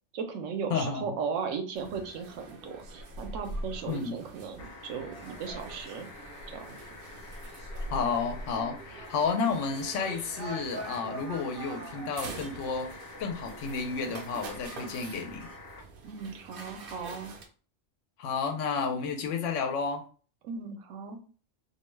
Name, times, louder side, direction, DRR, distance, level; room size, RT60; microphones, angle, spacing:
voice 1, 0.1-6.1 6.5-6.8 16.0-17.3 20.4-21.2, right 5 dB, 90° right, 0.9 m, -37 dB
voice 2, 0.7-1.2 3.9-4.1 7.9-15.5 18.2-20.0, left 5 dB, 90° left, 0.9 m, -31 dB
sound 1, 1.7-17.4, right 2 dB, 60° right, 0.7 m, -43 dB
sound 2, 4.6-15.8 17.3-17.4, left 3 dB, 55° left, 0.9 m, -48 dB
2.5 x 2.2 x 3.1 m
omnidirectional pair, 1.2 m